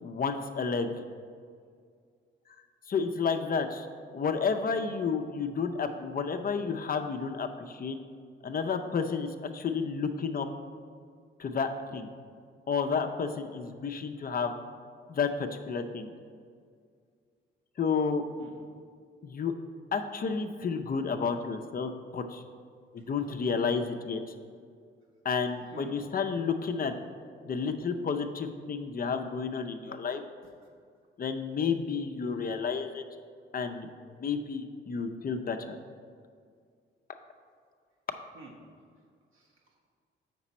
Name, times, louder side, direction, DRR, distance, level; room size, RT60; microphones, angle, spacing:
voice 1, 0.0-0.9 2.9-3.9 4.1-8.0 8.4-10.5 11.4-12.1 12.7-14.5 15.1-16.1 17.8-18.2 19.2-19.5 19.9-22.4 22.9-24.2 25.2-26.9 27.4-30.2 31.2-33.0 33.5-33.9 34.1-35.8, left 5 dB, 45° left, 6 dB, 0.6 m, -31 dB
voice 2, 23.0-23.3 25.7-26.0 38.3-38.5 39.3-39.9, right 3 dB, 70° right, -2 dB, 1.5 m, -50 dB
7.1 x 6.0 x 4.2 m, 2.1 s
cardioid pair, 80°, 21 cm